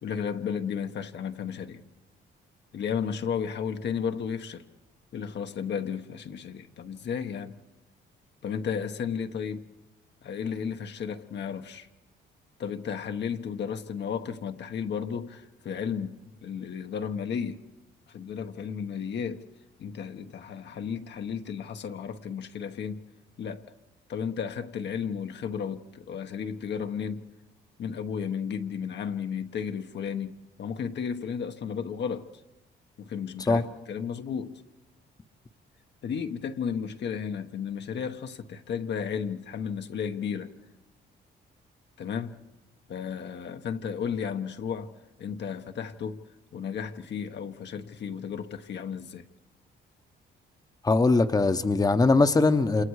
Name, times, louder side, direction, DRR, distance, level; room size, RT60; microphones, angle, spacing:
voice 1, 0.0-1.8 2.7-4.6 5.1-7.5 8.4-9.7 10.2-11.9 12.6-17.6 18.1-19.4 19.8-23.0 23.4-23.6 24.1-27.2 27.8-32.3 33.0-34.6 36.0-40.5 42.0-42.3 42.9-44.9 45.2-46.2 46.5-49.2, left 7 dB, 60° left, 1.2 m, -33 dB
voice 2, 50.8-52.8, left 3 dB, 20° left, 1.0 m, -21 dB
28.0 x 27.5 x 4.8 m
cardioid pair, 90°, 20 cm